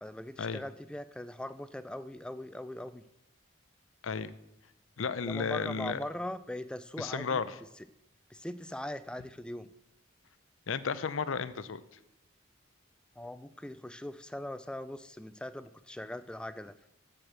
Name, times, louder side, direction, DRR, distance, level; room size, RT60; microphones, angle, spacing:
voice 1, 0.0-3.0 5.2-7.4 8.3-9.7 13.2-16.7, left 1 dB, 5° left, 12 dB, 0.4 m, -40 dB
voice 2, 5.0-6.0 7.0-7.6 10.7-11.8, left 5 dB, 85° left, 14 dB, 0.6 m, -33 dB
7.8 x 6.5 x 7.4 m, 0.83 s
head